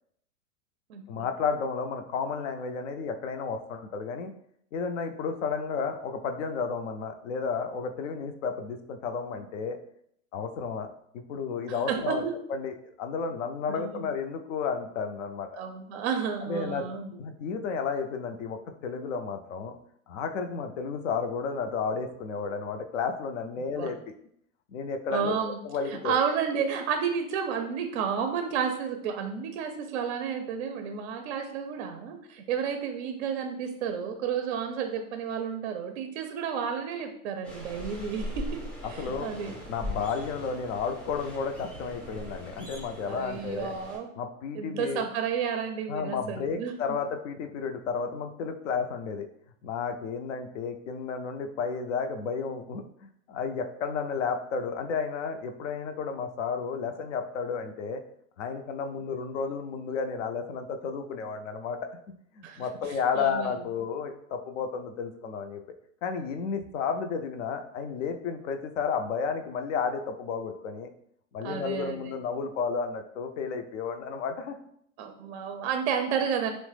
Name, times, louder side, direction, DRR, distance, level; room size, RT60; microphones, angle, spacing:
voice 1, 1.1-4.3 4.7-9.8 10.3-10.9 11.1-12.2 12.5-15.6 16.4-16.9 17.2-19.8 20.1-24.0 24.7-25.3 25.6-26.1 39.0-39.3 39.7-43.7 44.2-45.0 45.9-49.3 49.6-58.0 58.4-61.8 62.3-65.6 66.0-70.9 71.3-74.6, left 5 dB, 60° left, 7 dB, 0.5 m, -32 dB
voice 2, 11.9-12.4 13.7-14.1 15.5-17.2 23.8-23.9 25.1-25.6 25.9-38.6 38.9-39.5 43.1-44.1 44.5-47.0 62.4-62.7 63.1-63.6 71.4-72.1 75.0-76.5, right 7 dB, 50° right, 6 dB, 0.4 m, -31 dB
sound 1, 37.4-44.0, left 1 dB, 5° left, 0.4 m, -40 dB
2.9 x 2.1 x 3.2 m, 0.69 s
hypercardioid pair, 125°, 44 cm